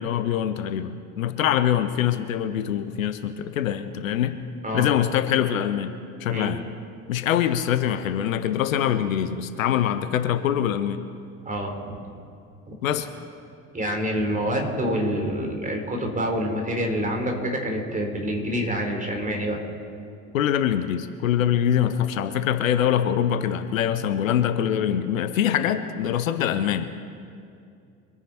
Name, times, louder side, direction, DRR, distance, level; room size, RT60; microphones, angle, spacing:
voice 1, 0.0-4.4 4.7-5.9 6.2-6.6 7.1-11.0 12.8-13.1 20.3-26.9, left 10 dB, 70° left, 10 dB, 0.8 m, -24 dB
voice 2, 11.5-12.0 12.7-12.8 13.7-19.6, equal, 20° right, 2 dB, 3.7 m, -27 dB
25.0 x 9.9 x 4.2 m, 2.4 s
figure-of-eight pair, 55°, 41 cm